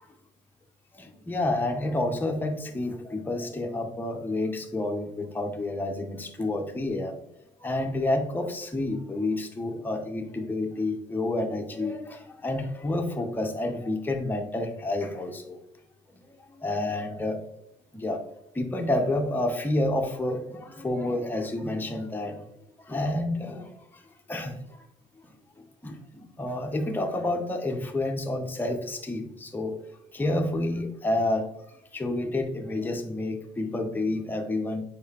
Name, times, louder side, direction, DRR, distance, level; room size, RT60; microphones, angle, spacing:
voice 1, 0.9-7.2 7.6-15.6 16.4-17.4 17.9-18.2 18.5-22.4 22.9-23.7 24.3-24.8 25.8-29.8 30.1-31.5 31.9-34.8, left 2 dB, 10° left, 3 dB, 0.6 m, -29 dB
4.7 x 3.5 x 2.8 m, 0.82 s
cardioid pair, 90°, 20 cm